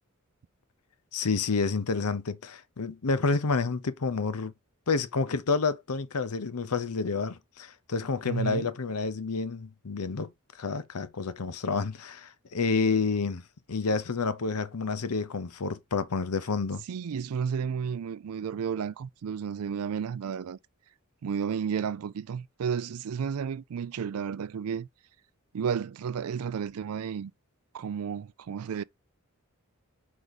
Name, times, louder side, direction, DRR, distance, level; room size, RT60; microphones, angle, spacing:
voice 1, 1.1-4.5 4.9-10.3 10.6-13.4 13.7-16.8, left 4 dB, 85° left, 0.8 m, -29 dB
voice 2, 8.3-8.7 16.9-20.6 21.2-24.9 25.5-27.3 27.7-28.8, right 7 dB, 80° right, 0.4 m, -32 dB
4.8 x 4.7 x 4.1 m
head